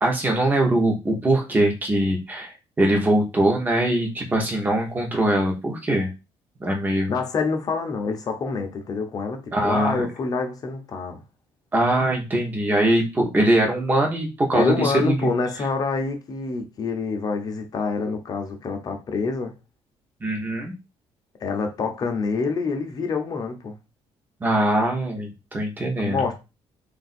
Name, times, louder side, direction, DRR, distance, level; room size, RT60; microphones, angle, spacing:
voice 1, 0.0-6.1 6.6-7.1 9.5-10.0 11.7-15.3 20.2-20.8 24.4-26.3, right 1 dB, 15° right, 1.0 m, -22 dB
voice 2, 7.1-11.2 14.5-19.5 21.4-23.8 26.0-26.4, left 4 dB, 35° left, 0.8 m, -26 dB
3.6 x 2.6 x 4.2 m
cardioid pair, 160°, 11 cm